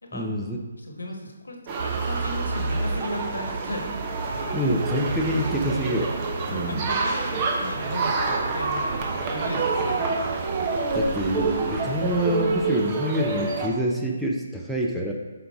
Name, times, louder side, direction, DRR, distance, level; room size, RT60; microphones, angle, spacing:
voice 1, 0.1-0.6 4.5-6.1 6.5-6.9 10.9-15.1, equal, ahead, -2 dB, 0.6 m, -26 dB
voice 2, 0.8-4.6 5.7-6.0 6.5-10.4, left 1 dB, 80° left, 2 dB, 1.3 m, -36 dB
sound 1, 1.7-13.7, right 3 dB, 30° right, 0.9 m, -28 dB
sound 2, 1.8-12.4, right 4 dB, 45° right, 0.4 m, -33 dB
7.2 x 4.8 x 3.5 m, 1.2 s
figure-of-eight pair, 145°, 0 cm